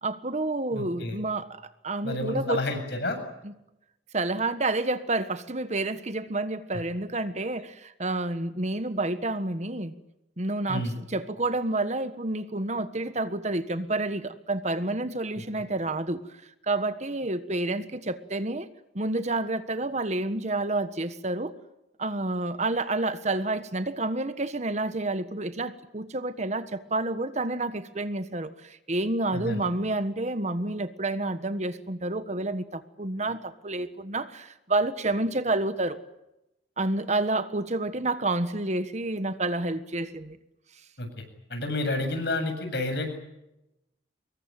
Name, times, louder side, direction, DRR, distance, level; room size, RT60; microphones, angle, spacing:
voice 1, 0.0-2.6 4.1-9.9 10.4-16.2 16.7-18.7 18.9-21.5 22.0-28.5 28.9-36.0 36.8-40.4, right 2 dB, 40° right, 1.5 m, -29 dB
voice 2, 0.7-1.2 2.0-3.2 10.7-11.0 15.3-15.6 29.3-29.6 41.0-41.2 41.5-43.1, left 2 dB, 65° left, 7.8 m, -30 dB
26.0 x 22.0 x 9.0 m
head